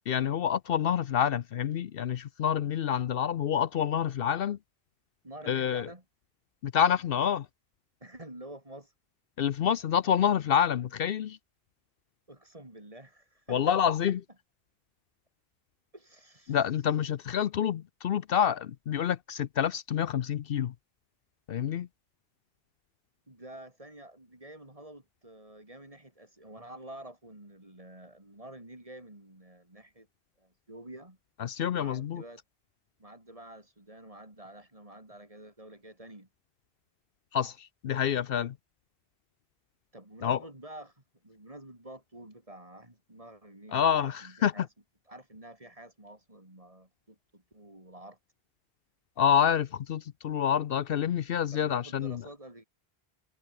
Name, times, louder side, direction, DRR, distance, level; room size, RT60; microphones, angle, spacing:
voice 1, 0.1-4.6 5.5-5.9 6.6-7.5 9.4-11.4 13.5-14.2 16.5-20.7 21.5-21.9 31.4-32.2 37.3-38.5 40.2-40.4 43.7-44.7 49.2-52.2, left 9 dB, 70° left, 0.8 m, -27 dB
voice 2, 5.2-6.0 8.0-8.9 12.3-13.9 15.9-16.6 23.3-30.1 30.4-31.2 31.7-32.4 33.0-36.3 39.9-44.7 45.1-48.2 51.5-52.6, right 1 dB, 35° right, 4.3 m, -49 dB
omnidirectional pair, 1.0 m